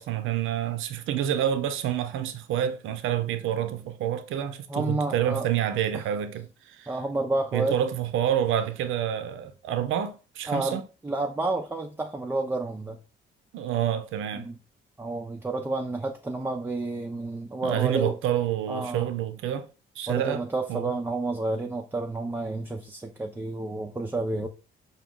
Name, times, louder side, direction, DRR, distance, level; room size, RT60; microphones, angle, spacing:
voice 1, 0.0-6.9 7.5-10.8 13.5-14.5 17.6-19.7 20.0-20.4 20.7-20.9, right 10 dB, 80° right, 0.5 m, -28 dB
voice 2, 4.7-5.4 5.9-6.0 6.9-7.7 10.5-13.0 14.3-14.6 15.0-18.2 18.7-19.1 20.1-24.5, right 2 dB, 10° right, 0.4 m, -30 dB
4.7 x 2.3 x 3.6 m
cardioid pair, 90°, 20 cm